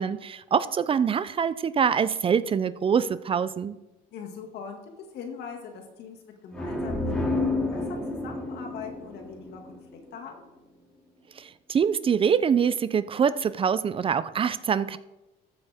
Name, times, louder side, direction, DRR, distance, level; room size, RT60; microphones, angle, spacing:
voice 1, 0.0-3.8 11.4-15.0, right 7 dB, 30° right, 15 dB, 0.4 m, -24 dB
voice 2, 4.1-10.4, left 6 dB, 75° left, 3 dB, 2.1 m, -41 dB
sound 1, 6.5-10.2, left 2 dB, 5° left, 2.3 m, -30 dB
14.0 x 8.1 x 3.5 m, 1.0 s
cardioid pair, 110°, 17 cm